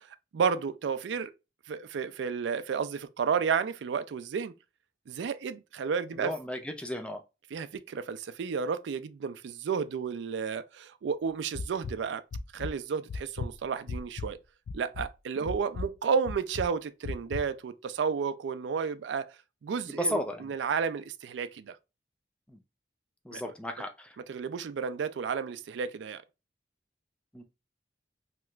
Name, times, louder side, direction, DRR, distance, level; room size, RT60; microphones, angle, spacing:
voice 1, 0.3-1.3 1.7-4.5 5.1-6.3 7.5-12.2 12.5-14.4 14.7-19.4 19.6-21.8 23.3-23.4 24.3-26.2, right 6 dB, 80° right, 0.3 m, -32 dB
voice 2, 6.1-7.2 19.9-20.5 22.5-22.6 23.2-24.2 27.3-27.4, left 1 dB, 5° left, 0.4 m, -34 dB
sound 1, 11.5-11.9 12.3-12.7 13.1-14.3 14.7-15.1 15.5-15.9 16.3-16.7 17.0-17.4, left 3 dB, 75° left, 0.4 m, -35 dB
2.9 x 2.3 x 3.2 m
head